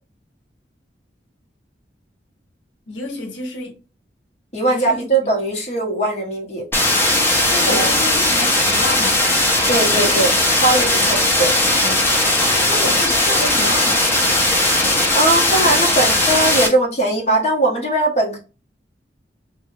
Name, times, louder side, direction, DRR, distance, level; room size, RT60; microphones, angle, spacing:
voice 1, 2.9-3.8 4.7-5.3 7.4-9.3 10.1-10.2 12.5-14.1, left 3 dB, 85° left, 0.7 m, -29 dB
voice 2, 4.5-6.7 7.6-7.9 9.7-11.5 11.8-12.0 15.1-18.4, right 2 dB, 40° left, 0.9 m, -20 dB
sound 1, 6.7-16.7, left 1 dB, 10° left, 0.6 m, -17 dB
2.6 x 2.2 x 3.1 m
head